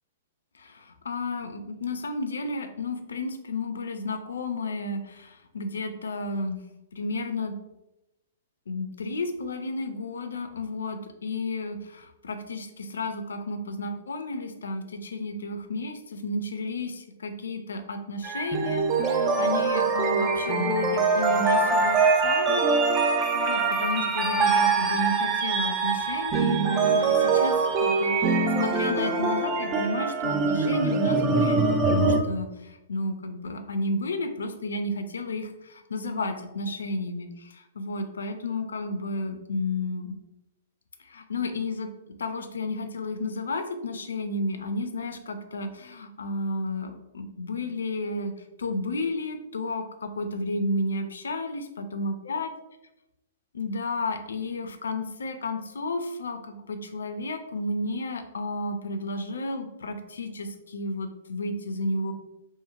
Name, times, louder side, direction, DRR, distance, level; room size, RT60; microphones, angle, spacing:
voice 1, 0.6-6.6 6.9-7.5 8.7-40.1 41.0-41.9 42.2-48.3 48.6-52.5 53.5-62.1, left 2 dB, 70° left, 7 dB, 0.3 m, -32 dB
sound 1, 18.2-32.2, right 4 dB, 30° right, 0.3 m, -23 dB
2.8 x 2.5 x 2.4 m, 0.93 s
figure-of-eight pair, 110°, 0 cm